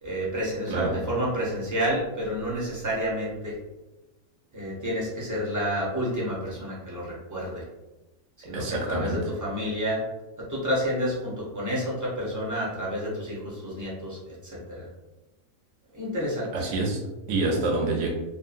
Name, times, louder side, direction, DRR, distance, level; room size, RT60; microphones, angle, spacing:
voice 1, 0.0-3.6 4.5-7.6 8.4-10.0 10.5-14.2 14.4-14.9 15.9-16.5, equal, 20° right, -6 dB, 0.6 m, -29 dB
voice 2, 8.5-9.2 16.5-17.0 17.3-18.1, right 2 dB, 65° right, 0 dB, 1.0 m, -27 dB
2.7 x 2.4 x 2.5 m, 1.0 s
omnidirectional pair, 1.5 m